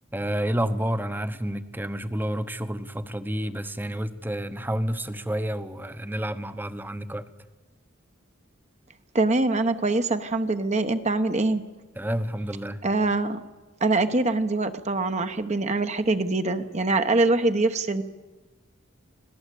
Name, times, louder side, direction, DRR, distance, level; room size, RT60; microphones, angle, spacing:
voice 1, 0.1-7.2 12.0-12.8, right 1 dB, 10° right, 13 dB, 0.9 m, -29 dB
voice 2, 9.1-11.6 12.8-13.4 13.8-18.0, right 2 dB, 35° right, 8 dB, 1.0 m, -24 dB
26.0 x 17.5 x 8.4 m, 1.3 s
head